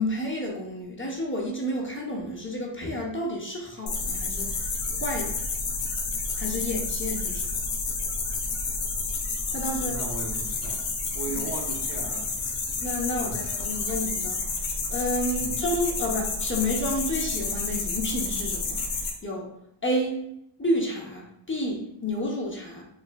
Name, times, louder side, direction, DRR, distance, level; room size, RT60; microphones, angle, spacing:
voice 1, 0.0-5.4 6.4-7.5 9.5-10.0 11.3-11.5 12.8-14.4 14.9-19.5 19.8-20.2 20.6-22.8, left 1 dB, 25° left, -2 dB, 0.8 m, -30 dB
sound 1, 3.9-19.1, left 4 dB, 90° left, 0.7 m, -30 dB
voice 2, 9.8-10.8 11.1-12.3 13.2-13.5 15.4-15.6, right 3 dB, 35° right, -2 dB, 0.5 m, -37 dB
3.2 x 3.0 x 2.2 m, 0.78 s
wide cardioid pair, 60°, 50 cm